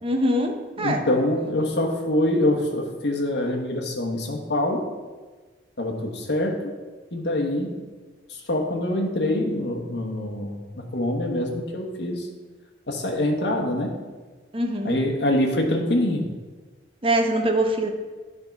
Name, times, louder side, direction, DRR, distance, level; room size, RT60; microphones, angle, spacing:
voice 1, 0.0-1.0 14.5-15.0 17.0-17.9, right 1 dB, 30° right, 4 dB, 0.8 m, -23 dB
voice 2, 0.8-4.8 5.8-6.7 7.1-7.7 8.5-10.5 10.9-12.3 12.9-13.9 14.8-16.3, left 1 dB, 65° left, 0 dB, 1.1 m, -24 dB
9.6 x 3.6 x 5.8 m, 1.3 s
head